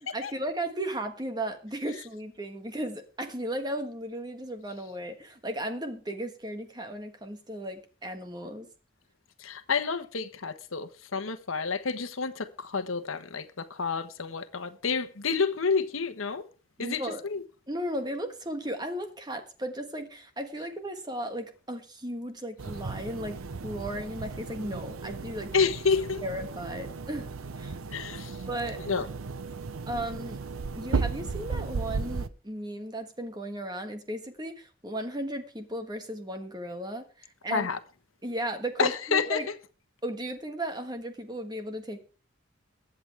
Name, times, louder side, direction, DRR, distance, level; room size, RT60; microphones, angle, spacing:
voice 1, 0.1-8.7 16.8-17.2 17.7-23.4 23.6-25.5 26.2-27.3 27.6-27.8 28.5-28.8 29.9-30.4 30.8-37.7 38.2-39.5 40.0-42.0, right 1 dB, 20° right, 1.5 m, -35 dB
voice 2, 9.4-16.5 16.8-17.4 25.5-26.2 27.9-28.4 28.8-29.1 37.5-37.8 38.8-39.4, left 5 dB, 80° left, 1.2 m, -29 dB
sound 1, 22.6-32.3, right 4 dB, 85° right, 0.7 m, -35 dB
22.5 x 8.1 x 3.4 m
head